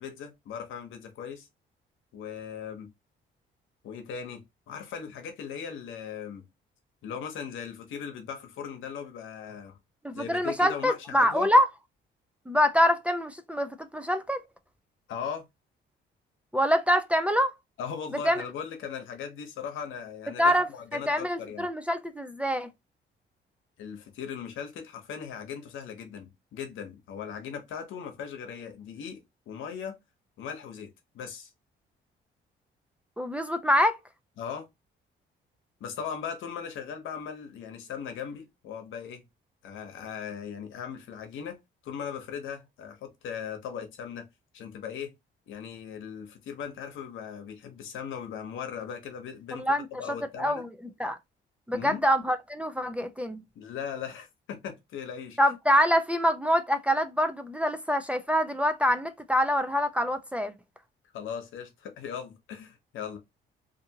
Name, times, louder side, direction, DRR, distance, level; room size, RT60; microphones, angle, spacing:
voice 1, 0.0-1.5 2.1-2.9 3.8-4.4 4.7-6.5 7.0-9.8 10.1-11.5 15.1-15.5 17.8-21.7 23.8-29.2 29.5-30.0 30.4-31.5 34.4-34.7 35.8-39.2 39.6-41.6 41.8-44.3 44.5-45.1 45.5-50.7 51.7-52.0 53.5-55.4 61.1-63.2, left 7 dB, 80° left, 0.8 m, -38 dB
voice 2, 10.0-11.7 12.5-14.4 16.5-17.5 18.2-18.4 20.4-22.7 33.2-34.0 49.5-49.9 50.4-50.7 51.0-51.2 51.7-53.4 55.4-60.5, equal, 5° right, 0.4 m, -25 dB
2.6 x 2.5 x 2.7 m
cardioid pair, 90°, 20 cm